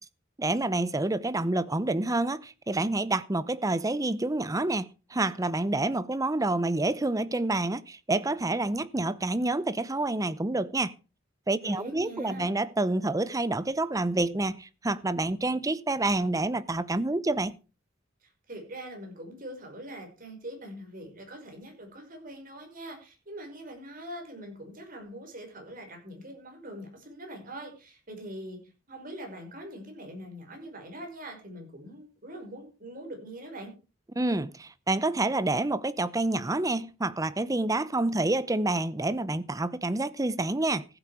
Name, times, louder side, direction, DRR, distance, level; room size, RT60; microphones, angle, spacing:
voice 1, 0.4-10.9 11.5-17.6 34.2-40.9, right 2 dB, 20° right, 0.7 m, -28 dB
voice 2, 11.6-12.5 18.2-28.6 28.9-33.7, right 1 dB, 45° right, 5.5 m, -43 dB
15.0 x 8.6 x 4.9 m
head